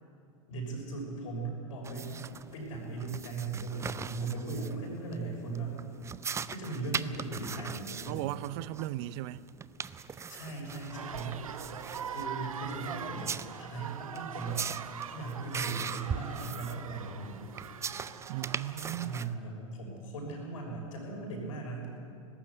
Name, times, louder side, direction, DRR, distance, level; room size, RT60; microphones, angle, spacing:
voice 1, 0.5-2.3 2.5-5.8 6.5-8.3 10.3-11.4 12.1-14.7 15.1-17.4 19.0-21.9, right 3 dB, 70° left, 6.1 m, -38 dB
sound 1, 1.8-19.3, right 6 dB, 15° right, 0.5 m, -41 dB
voice 2, 8.1-9.4 18.3-19.3, right 15 dB, 50° right, 0.7 m, -37 dB
sound 2, 10.9-19.2, right 8 dB, 80° right, 0.9 m, -42 dB
18.5 x 15.0 x 9.7 m
figure-of-eight pair, 90°, 18 cm